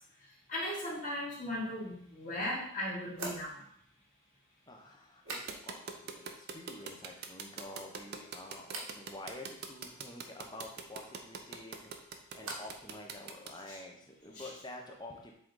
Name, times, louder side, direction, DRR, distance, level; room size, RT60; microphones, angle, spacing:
voice 1, 0.5-3.6 13.7-13.8 14.3-14.5, left 1 dB, 35° left, -6 dB, 2.2 m, -37 dB
sound 1, 3.1-6.0 6.2-6.8 7.2-7.8 8.6-9.0 11.4-12.9 13.1-13.7, right 3 dB, 85° right, 1.5 m, -47 dB
voice 2, 4.7-8.7 8.9-11.9 12.3-15.3, left 1 dB, 20° left, 1 dB, 0.9 m, -48 dB
sound 2, 5.5-13.5, right 5 dB, 50° right, 0.6 m, -43 dB
7.5 x 3.9 x 3.9 m, 0.69 s
head